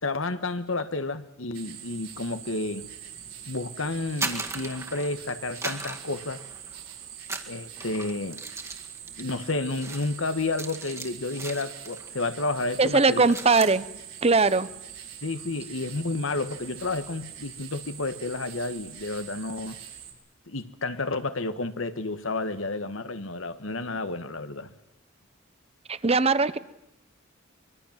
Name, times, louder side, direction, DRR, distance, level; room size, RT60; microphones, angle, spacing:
voice 1, 0.0-2.9 3.5-6.4 7.5-8.4 9.2-13.2 15.2-19.8 20.5-24.7, left 2 dB, 75° left, 1.5 m, -31 dB
sound 1, 1.5-20.1, right 9 dB, 90° right, 6.1 m, -44 dB
sound 2, 4.0-5.2 5.6-6.8 7.2-12.1 12.4-12.7 13.0-13.8, right 3 dB, 15° right, 2.0 m, -37 dB
voice 2, 12.8-13.8 14.2-14.7 25.9-26.6, right 4 dB, 30° right, 0.9 m, -20 dB
24.5 x 23.0 x 7.4 m
head